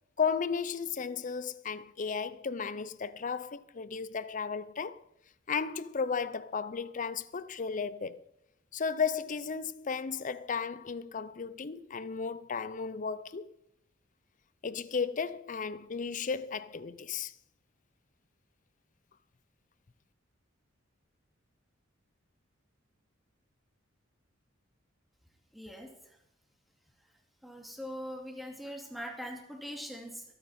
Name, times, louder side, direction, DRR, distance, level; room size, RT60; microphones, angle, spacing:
voice 1, 0.2-5.0 5.5-8.2 8.7-13.5 14.6-17.3, left 5 dB, 40° left, 0.5 m, -34 dB
voice 2, 25.5-25.9 27.4-30.2, equal, ahead, 2.4 m, -41 dB
23.5 x 9.1 x 4.3 m
head